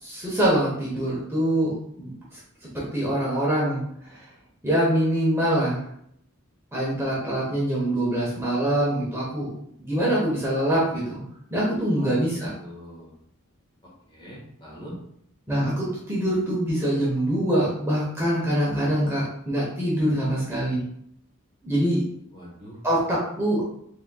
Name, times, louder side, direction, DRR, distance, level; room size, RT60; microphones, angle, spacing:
voice 1, 0.0-2.1 2.7-3.8 4.6-5.8 6.7-9.5 9.8-11.2 11.5-12.5 15.5-20.8 21.6-22.0 22.8-23.6, right 1 dB, 10° right, -6 dB, 0.9 m, -24 dB
voice 2, 12.6-13.1 14.1-15.0 22.3-22.8, equal, 25° left, -5 dB, 1.5 m, -42 dB
4.2 x 3.6 x 2.3 m, 0.71 s
head